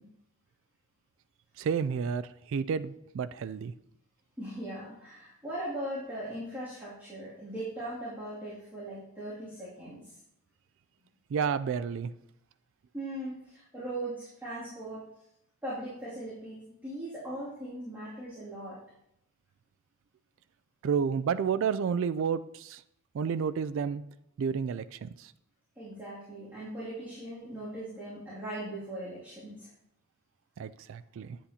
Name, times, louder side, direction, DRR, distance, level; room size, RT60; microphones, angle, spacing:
voice 1, 1.6-2.2 2.5-3.7 11.3-12.1 20.8-22.8 23.1-24.0 24.4-25.3 30.6-31.4, right 6 dB, 60° right, 14 dB, 0.3 m, -30 dB
voice 2, 4.4-10.1 12.9-15.0 15.6-18.8 25.8-29.7, right 1 dB, 10° right, -11 dB, 2.5 m, -39 dB
10.5 x 8.1 x 2.8 m, 0.77 s
head